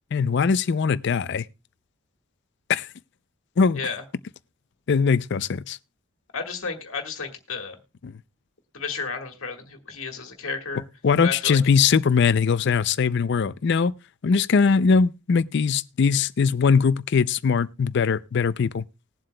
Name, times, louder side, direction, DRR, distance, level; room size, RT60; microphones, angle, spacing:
voice 1, 0.1-1.4 2.7-2.9 3.6-3.8 4.9-5.8 8.0-8.1 11.0-13.9 14.2-18.8, left 5 dB, 55° left, 0.4 m, -21 dB
voice 2, 6.3-7.8 8.7-10.8 11.2-11.6, left 5 dB, 75° left, 1.7 m, -32 dB
20.5 x 7.6 x 2.2 m
head